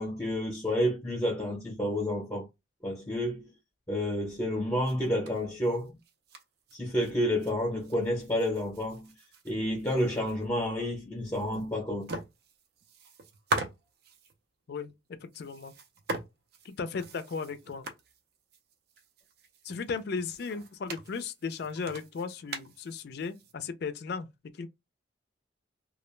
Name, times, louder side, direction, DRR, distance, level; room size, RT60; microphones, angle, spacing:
voice 1, 0.0-2.5 2.8-3.5 3.9-5.9 6.7-9.1 9.4-12.2, equal, 15° left, 0.7 m, -30 dB
sound 1, 4.8-7.5 7.8-10.5 10.8-10.9 11.3-11.7 12.0-14.4 15.3-23.5, right 1 dB, 55° right, 0.5 m, -41 dB
voice 2, 15.2-15.7 16.6-17.9 19.6-24.3 24.6-24.7, left 5 dB, 55° left, 0.4 m, -36 dB
2.3 x 2.1 x 3.1 m
head